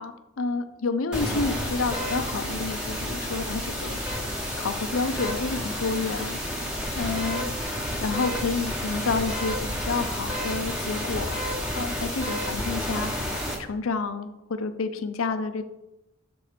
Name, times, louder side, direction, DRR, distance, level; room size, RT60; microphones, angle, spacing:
voice 1, 0.0-4.0 4.6-6.4 6.9-11.4 11.7-15.6, left 4 dB, 70° left, 10 dB, 0.5 m, -30 dB
sound 1, 1.1-13.5, equal, 5° right, 1.0 m, -30 dB
7.0 x 4.3 x 5.0 m, 0.92 s
head